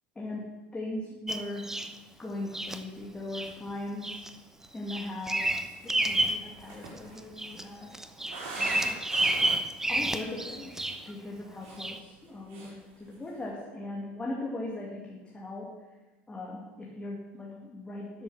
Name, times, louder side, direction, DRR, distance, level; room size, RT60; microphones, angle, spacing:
voice 1, 0.2-1.7 2.2-4.2 4.7-8.0 8.5-9.0 9.4-10.8 11.1-15.8 16.3-18.2, left 2 dB, 15° left, -2 dB, 2.3 m, -39 dB
Bird vocalization bird call bird song, 1.3-1.9 2.5-2.8 3.3-3.5 4.0-4.3 4.6-6.4 6.9-7.6 7.9-11.1 11.8-12.0, right 1 dB, 10° right, 0.8 m, -30 dB
sound 1, 2.5-2.6 3.0-3.1 3.3-3.8 4.6-9.7 10.2-10.3 10.6-11.0 11.4-12.2 12.5-12.8 13.1-13.4, right 3 dB, 60° right, 5.0 m, -44 dB
12.0 x 7.1 x 7.4 m, 1.2 s
hypercardioid pair, 80°, 6 cm